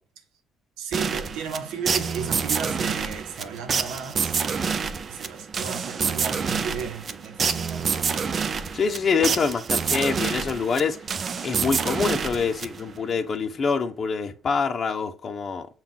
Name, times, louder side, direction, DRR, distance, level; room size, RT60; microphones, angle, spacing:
voice 1, 0.8-4.4 5.1-8.0, right 6 dB, 80° right, 0.8 m, -34 dB
sound 1, 0.9-13.1, right 6 dB, 45° right, 0.4 m, -27 dB
voice 2, 8.7-11.0 11.4-15.7, left 5 dB, 45° left, 0.6 m, -25 dB
5.5 x 2.4 x 3.7 m
supercardioid pair, 75°, 0 cm